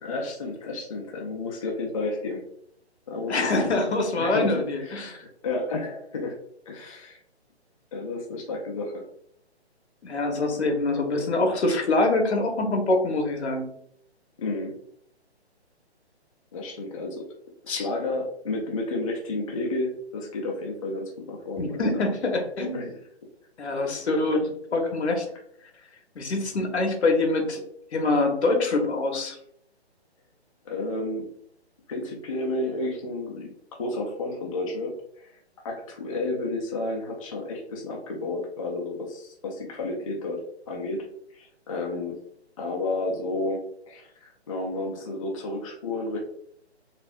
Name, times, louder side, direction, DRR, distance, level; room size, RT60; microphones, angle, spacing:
voice 1, 0.0-2.5 3.1-3.6 4.2-6.4 6.7-7.2 7.9-9.0 14.4-14.7 16.5-17.2 17.6-21.8 22.7-22.9 30.6-31.3 31.9-33.5 33.8-35.3 35.6-41.1 41.3-42.1 42.6-46.2, left 2 dB, 30° left, 0 dB, 0.5 m, -31 dB
voice 2, 3.3-5.2 10.0-13.7 17.7-17.8 21.6-22.8 23.6-25.3 26.1-27.6 27.9-29.4, left 2 dB, 75° left, 3 dB, 1.0 m, -25 dB
4.2 x 2.4 x 2.3 m, 0.68 s
hypercardioid pair, 155°, 33 cm